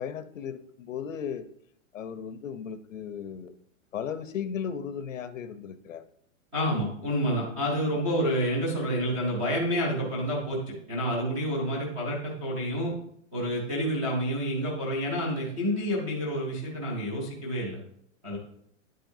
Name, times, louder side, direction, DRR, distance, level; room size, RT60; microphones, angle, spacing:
voice 1, 0.0-1.5 1.9-3.5 3.9-6.0, left 7 dB, 75° left, 12 dB, 0.8 m, -36 dB
voice 2, 6.5-12.9 13.3-17.8 18.2-18.4, equal, 5° right, -6 dB, 0.5 m, -29 dB
9.9 x 7.7 x 2.7 m, 0.68 s
hypercardioid pair, 175°, 39 cm